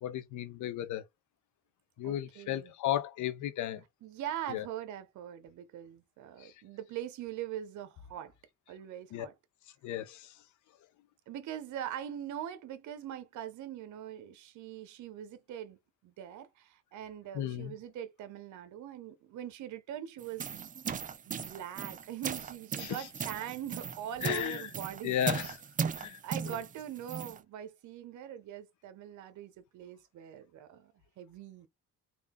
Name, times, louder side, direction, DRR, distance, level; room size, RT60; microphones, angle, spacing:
voice 1, 0.0-1.1 2.0-3.8 4.5-4.6 6.4-6.5 9.1-9.3 9.8-10.3 17.3-17.7 22.8-23.0 24.2-24.7 25.0-25.6 26.0-26.2 26.5-26.6, left 11 dB, 75° left, 0.6 m, -34 dB
voice 2, 2.0-2.7 4.0-8.3 8.7-9.3 11.3-20.7 21.3-25.4 26.2-31.7, right 11 dB, 75° right, 0.7 m, -42 dB
sound 1, 20.2-27.4, right 6 dB, 30° right, 0.4 m, -38 dB
3.7 x 2.4 x 3.6 m
cardioid pair, 90°, 30 cm